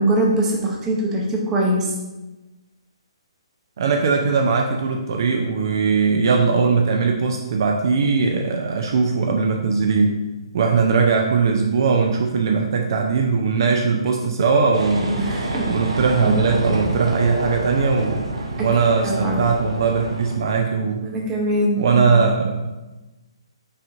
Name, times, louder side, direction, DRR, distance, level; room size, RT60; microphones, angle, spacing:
voice 1, 0.0-1.9 15.2-15.7 16.2-16.4 18.6-18.7 19.0-19.4 21.0-22.3, right 1 dB, 15° right, -1 dB, 0.8 m, -22 dB
voice 2, 3.8-10.2 10.5-15.2 15.7-18.3 18.6-21.0 21.8-22.7, right 5 dB, 50° right, 2 dB, 0.4 m, -20 dB
sound 1, 14.7-20.4, right 1 dB, 75° right, 0.8 m, -28 dB
5.5 x 3.7 x 2.6 m, 1.1 s
figure-of-eight pair, 130°, 3 cm